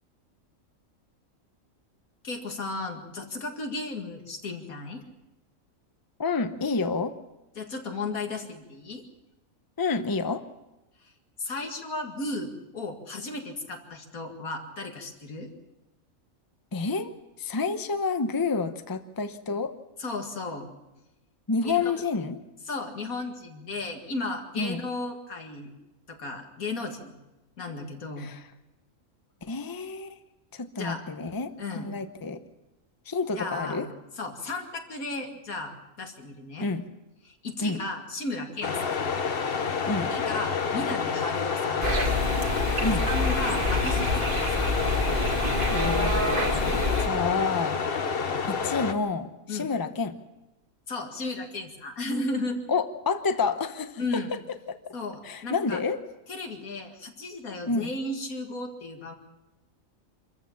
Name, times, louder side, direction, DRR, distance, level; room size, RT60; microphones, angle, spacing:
voice 1, 2.2-5.0 7.6-9.0 11.0-11.1 11.4-15.5 20.0-20.7 21.6-22.0 22.7-25.7 26.1-27.2 27.6-28.3 30.8-31.0 31.6-31.9 33.4-33.9 34.2-36.7 37.2-39.0 40.1-41.9 43.1-44.8 49.5-49.7 50.9-52.6 54.0-54.3 54.9-55.8 56.3-59.1, left 2 dB, 85° left, 4 dB, 2.5 m, -34 dB
voice 2, 6.2-7.2 9.8-10.4 16.7-17.1 17.4-19.7 21.5-22.4 24.6-24.8 28.2-28.4 29.4-30.2 30.5-32.4 33.1-33.9 36.6-36.8 37.6-37.8 39.9-40.1 42.8-43.1 45.7-47.8 48.5-50.2 52.7-54.0 54.7-54.8 55.2-56.0 57.7-57.9, left 4 dB, 20° left, 9 dB, 0.8 m, -29 dB
sound 1, 38.6-48.9, left 5 dB, 45° left, 1.1 m, -29 dB
sound 2, 41.8-47.1, left 1 dB, 40° right, 1.9 m, -27 dB
25.5 x 14.5 x 7.2 m, 0.98 s
omnidirectional pair, 1.5 m